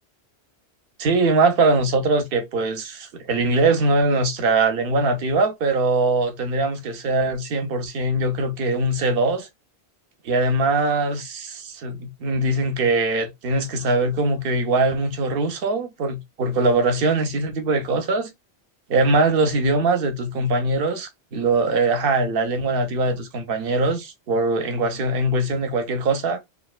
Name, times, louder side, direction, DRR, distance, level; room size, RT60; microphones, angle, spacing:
voice 1, 1.0-9.5 10.2-18.3 18.9-26.4, right 2 dB, 60° right, 0.8 m, -22 dB
2.6 x 2.1 x 2.3 m
omnidirectional pair, 1.1 m